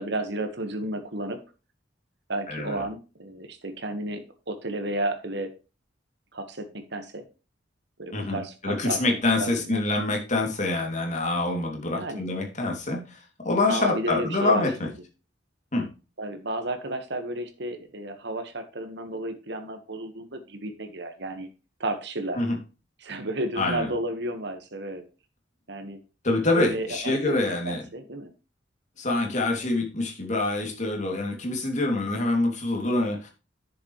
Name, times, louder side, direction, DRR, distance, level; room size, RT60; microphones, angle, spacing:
voice 1, 0.0-1.4 2.3-5.5 6.3-7.2 8.0-9.8 11.9-12.3 13.7-14.9 16.2-21.5 21.8-22.4 23.0-25.0 25.7-26.0 26.5-28.3, right 1 dB, 65° right, 7 dB, 1.6 m, -32 dB
voice 2, 2.5-2.8 8.1-14.9 15.7-15.8 22.4-22.6 23.6-23.9 26.2-27.8 29.0-33.3, left 2 dB, 40° left, 1 dB, 2.8 m, -26 dB
10.5 x 7.0 x 3.2 m, 0.31 s
head